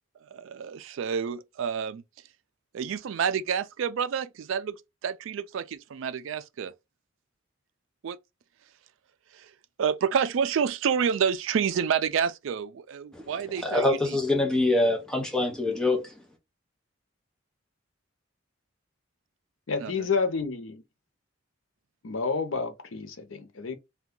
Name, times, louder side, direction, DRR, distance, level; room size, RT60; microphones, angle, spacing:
voice 1, 0.3-2.0 2.7-4.8 5.0-6.7 8.0-8.2 9.3-9.5 9.8-13.9 19.8-20.1, right 7 dB, 75° right, 0.4 m, -28 dB
voice 2, 13.6-16.1, left 2 dB, 5° left, 0.7 m, -25 dB
voice 3, 19.7-20.8 22.0-23.7, left 4 dB, 85° left, 0.7 m, -29 dB
2.7 x 2.3 x 3.6 m
head